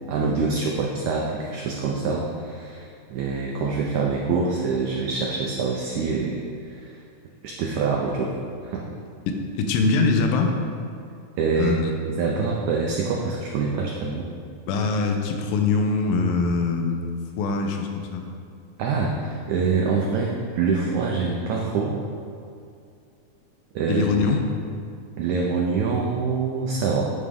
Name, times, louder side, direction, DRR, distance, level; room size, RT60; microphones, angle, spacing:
voice 1, 0.0-6.4 6.7-7.0 7.4-8.3 8.6-8.8 11.4-11.8 12.0-14.3 18.8-22.0 23.7-24.0 25.2-27.1, right 4 dB, 90° right, -1 dB, 1.6 m, -25 dB
voice 2, 9.3-10.5 11.6-11.9 14.7-17.1 17.4-18.3 23.9-24.4, left 4 dB, 80° left, 3 dB, 2.4 m, -23 dB
8.3 x 7.7 x 3.6 m, 2.4 s
omnidirectional pair, 4.2 m